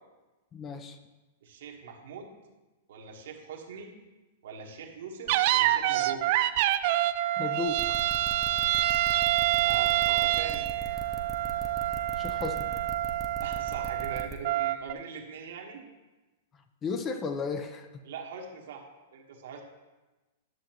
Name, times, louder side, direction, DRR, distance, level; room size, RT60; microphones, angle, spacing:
voice 1, 0.5-1.0 7.4-8.0 12.2-12.7 16.8-18.0, left 5 dB, 25° left, 8 dB, 0.6 m, -34 dB
voice 2, 1.4-2.3 2.9-3.9 4.4-6.2 9.6-10.6 13.4-15.8 18.0-18.9 19.1-19.6, right 6 dB, 70° right, 1 dB, 1.3 m, -41 dB
sound 1, 5.3-14.9, right 14 dB, 55° right, 0.3 m, -27 dB
sound 2, 7.7-14.4, right 1 dB, 20° right, 0.8 m, -41 dB
10.5 x 6.3 x 3.0 m, 1.1 s
hypercardioid pair, 120°, 0 cm